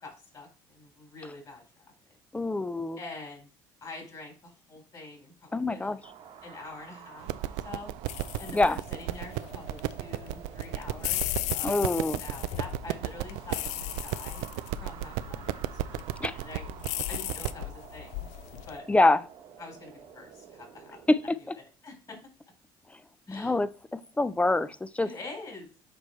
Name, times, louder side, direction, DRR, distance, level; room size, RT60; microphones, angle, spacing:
voice 1, 0.0-1.8 3.0-3.5 3.8-6.0 6.4-7.9 8.4-14.4 14.8-16.6 17.1-18.3 18.7-18.9 19.6-22.2 23.3-23.6 25.0-25.7, left 3 dB, 35° left, 1 dB, 3.6 m, -46 dB
voice 2, 2.3-3.0 5.5-6.0 8.5-8.8 11.6-12.2 16.2-16.3 18.9-19.2 21.1-21.2 23.3-25.1, left 2 dB, 10° left, 15 dB, 0.5 m, -25 dB
sound 1, 6.0-21.3, right 8 dB, 65° right, 1.3 m, -50 dB
sound 2, 7.2-17.7, right 15 dB, 85° right, 0.4 m, -35 dB
sound 3, 8.1-18.8, left 15 dB, 80° left, 0.4 m, -37 dB
7.6 x 4.6 x 3.2 m, 0.35 s
supercardioid pair, 95°, 11 cm